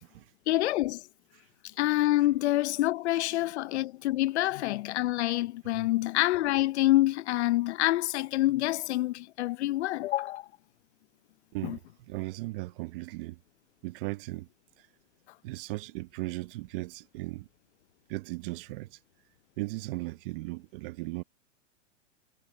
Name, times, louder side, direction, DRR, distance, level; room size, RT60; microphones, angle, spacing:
voice 1, 0.5-1.0 1.8-10.5 11.6-11.8, left 16 dB, 60° left, 0.6 m, -27 dB
voice 2, 12.1-13.4 13.8-14.5 14.8-14.9 15.4-17.5 18.1-19.0 19.6-21.2, right 21 dB, 45° right, 1.0 m, -37 dB
hypercardioid pair, 135°, 37 cm